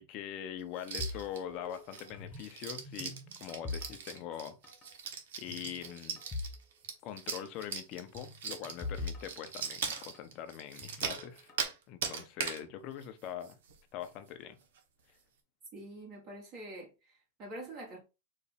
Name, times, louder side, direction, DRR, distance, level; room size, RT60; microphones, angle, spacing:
voice 1, 0.0-4.6 5.4-6.2 7.0-11.5 11.9-13.6 13.9-14.6, left 10 dB, 40° left, 0.7 m, -43 dB
sound 1, 0.8-1.4 1.7-11.7 12.0-12.6 13.0-13.1 13.4-13.8 14.0-14.1 14.6-14.8, right 6 dB, 75° right, 1.0 m, -40 dB
sound 2, 1.0-2.5 2.8-4.4 4.6-4.9 5.5-6.6 6.9-7.0 8.2-10.2 10.8-11.6, left 3 dB, 25° left, 1.1 m, -42 dB
voice 2, 15.7-18.0, right 1 dB, 40° right, 1.9 m, -46 dB
4.1 x 2.5 x 4.0 m
supercardioid pair, 135°, 0 cm